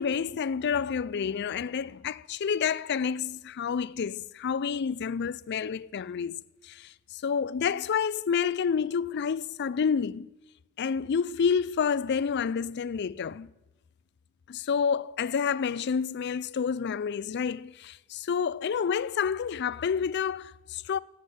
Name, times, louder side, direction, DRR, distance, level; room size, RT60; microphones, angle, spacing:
voice 1, 0.0-10.3 10.8-13.5 14.5-21.0, left 6 dB, 55° left, 0.4 m, -29 dB
15.0 x 8.0 x 10.0 m
head